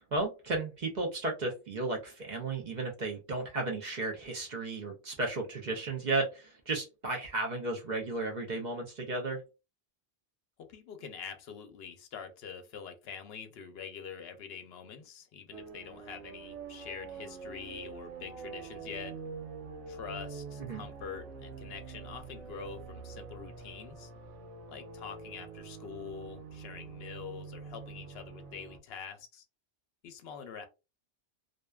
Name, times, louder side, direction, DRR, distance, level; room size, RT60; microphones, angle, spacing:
voice 1, 0.0-9.4 20.6-20.8, right 2 dB, 50° right, 1 dB, 0.6 m, -34 dB
voice 2, 10.6-19.2 19.9-24.1 24.7-29.4 30.0-30.7, left 6 dB, 65° left, 7 dB, 0.7 m, -45 dB
sound 1, 15.5-28.8, right 5 dB, 90° right, 0.9 m, -45 dB
2.5 x 2.1 x 2.2 m, 0.28 s
omnidirectional pair, 1.2 m